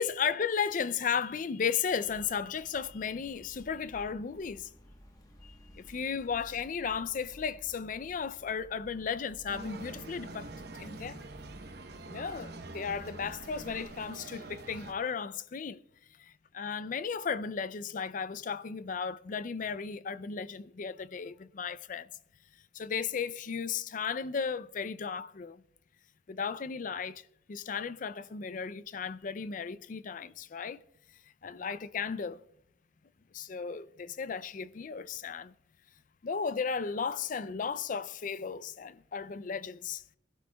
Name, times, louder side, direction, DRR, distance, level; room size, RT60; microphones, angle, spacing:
voice 1, 0.0-4.7 5.4-10.5 10.8-11.2 12.1-15.8 16.2-22.1 22.7-25.6 26.3-30.8 31.4-32.4 33.3-35.5 36.2-40.0, left 6 dB, 40° left, 0.4 m, -35 dB
sound 1, 2.0-13.6, equal, 20° left, 1.1 m, -56 dB
sound 2, 9.5-14.9, right 2 dB, 55° right, 0.9 m, -45 dB
23.0 x 12.0 x 2.3 m
head